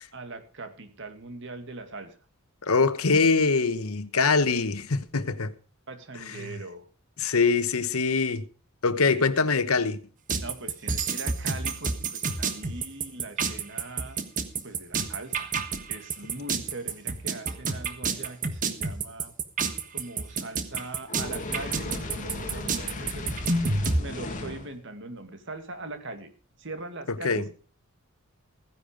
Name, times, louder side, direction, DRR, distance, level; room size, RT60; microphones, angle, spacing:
voice 1, 0.1-2.2 5.9-6.9 9.1-9.3 10.4-14.2 14.6-15.5 15.9-19.3 19.9-23.5 24.0-26.3 26.6-27.5, right 2 dB, 60° right, 2.3 m, -41 dB
voice 2, 2.6-5.5 6.3-6.5 7.2-8.5 8.8-10.0 27.2-27.5, left 4 dB, 90° left, 1.0 m, -23 dB
sound 1, 10.3-24.0, right 4 dB, 40° right, 1.4 m, -29 dB
Fire, 21.1-24.7, left 2 dB, 35° left, 2.2 m, -36 dB
15.5 x 10.5 x 5.1 m
head